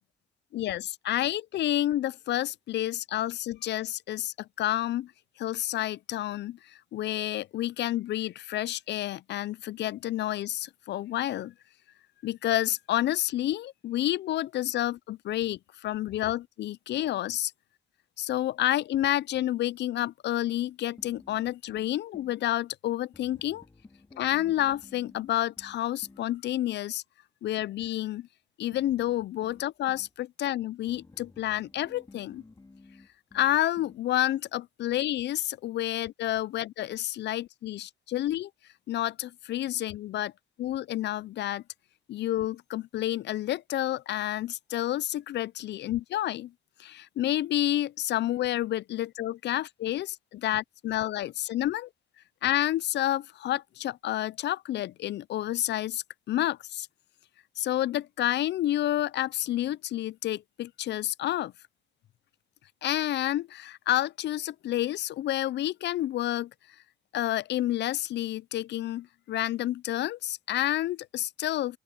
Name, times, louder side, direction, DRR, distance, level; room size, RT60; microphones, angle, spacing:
voice 1, 0.5-5.1 5.4-11.5 12.2-17.5 18.2-23.6 24.2-27.0 27.4-28.3 28.6-32.4 33.3-38.5 38.9-40.3 40.6-41.6 42.1-46.5 46.8-51.9 52.4-56.9 57.6-61.5 62.8-66.5 67.1-71.8, left 13 dB, 60° left, 0.4 m, -29 dB
sound 1, 21.0-22.4 23.1-26.3 28.7-30.1 30.9-34.1, left 3 dB, 20° left, 2.6 m, -54 dB
open air
cardioid pair, 90°, 20 cm